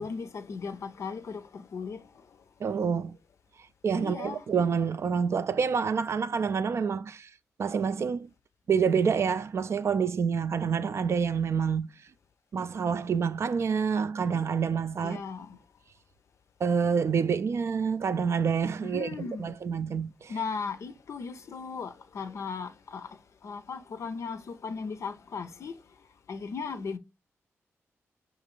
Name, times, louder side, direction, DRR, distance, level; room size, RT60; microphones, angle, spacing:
voice 1, 0.0-2.1 4.0-4.4 15.0-15.6 18.8-19.6 20.3-25.8 26.3-27.0, left 5 dB, 65° left, 0.5 m, -37 dB
voice 2, 2.6-3.1 3.8-7.3 7.6-8.3 8.7-11.9 12.5-15.2 16.6-20.3, right 6 dB, 60° right, 0.3 m, -27 dB
5.0 x 2.5 x 3.0 m
cardioid pair, 60°, 5 cm